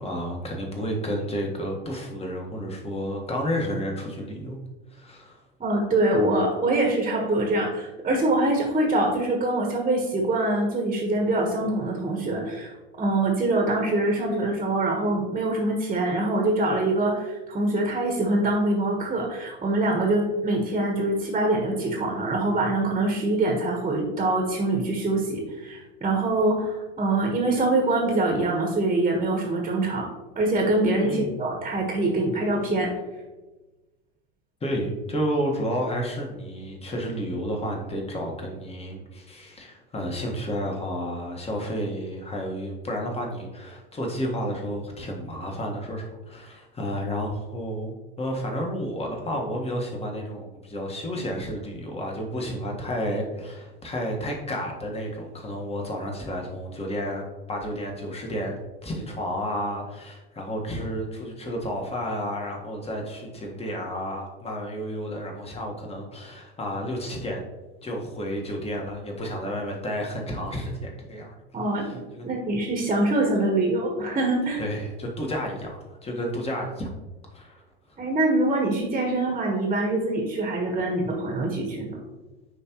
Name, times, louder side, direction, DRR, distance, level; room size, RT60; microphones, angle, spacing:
voice 1, 0.0-4.6 4.9-5.4 31.0-31.3 34.6-67.4 67.8-71.3 71.8-72.3 74.6-76.9 77.3-78.0, equal, 20° left, 1 dB, 1.5 m, -31 dB
voice 2, 5.6-12.7 13.0-30.1 30.3-32.9 71.5-72.0 72.2-74.6 78.0-82.0, right 2 dB, 20° right, 0 dB, 1.3 m, -24 dB
9.7 x 3.3 x 3.0 m, 1.1 s
hypercardioid pair, 85°, 32 cm